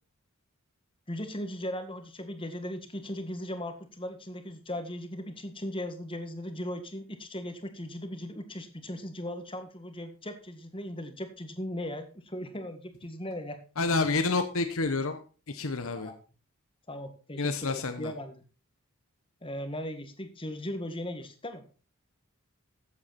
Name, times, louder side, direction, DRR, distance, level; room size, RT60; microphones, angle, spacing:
voice 1, 1.1-13.6 16.0-16.2 16.9-18.3 19.4-21.6, left 1 dB, 25° left, 7 dB, 1.8 m, -38 dB
voice 2, 13.8-15.2 15.5-16.1 17.4-18.1, left 3 dB, 70° left, 9 dB, 1.1 m, -29 dB
14.5 x 8.3 x 4.2 m, 0.35 s
head